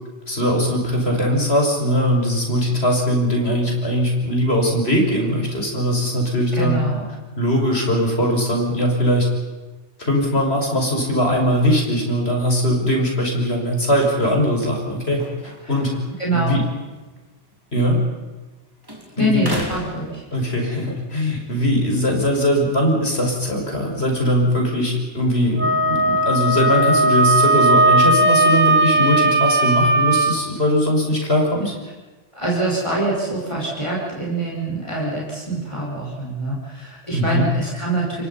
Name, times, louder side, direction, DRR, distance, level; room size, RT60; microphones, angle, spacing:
voice 1, 0.3-6.8 7.4-9.3 10.0-16.0 16.3-16.6 17.7-18.0 19.2-19.4 20.3-31.7 37.1-37.5, equal, 65° left, 1 dB, 6.1 m, -20 dB
voice 2, 6.5-7.1 15.6-15.7 16.2-16.6 19.2-20.2 32.3-38.3, right 2 dB, 25° left, -4 dB, 5.6 m, -24 dB
sound 1, 12.9-18.6 18.8-20.9 21.3-24.4, equal, 20° right, 3.8 m, -39 dB
Wind instrument woodwind instrument, 25.6-30.4, right 1 dB, 45° right, 1.7 m, -17 dB
29.0 x 23.5 x 5.7 m, 1.2 s
omnidirectional pair, 1.1 m